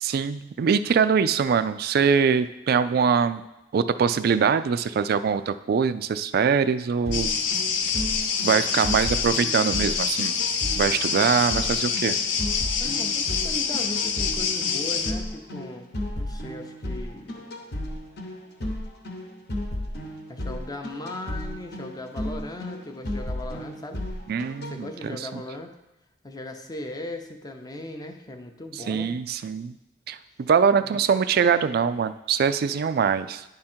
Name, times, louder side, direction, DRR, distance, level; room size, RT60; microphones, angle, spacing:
voice 1, 0.0-3.4 3.7-7.3 8.4-10.4 10.7-12.2 24.3-25.4 28.7-29.7 30.1-33.4, right 6 dB, 55° right, 13 dB, 0.3 m, -23 dB
sound 1, 7.1-15.1, left 6 dB, 75° left, 0.6 m, -26 dB
sound 2, 7.1-24.7, left 1 dB, 60° left, 1.0 m, -34 dB
voice 2, 12.8-15.9 16.2-17.5 20.3-24.0 24.6-25.7 26.2-29.1 30.8-31.0, left 2 dB, 20° left, 5 dB, 0.6 m, -38 dB
10.5 x 3.7 x 4.4 m, 0.94 s
head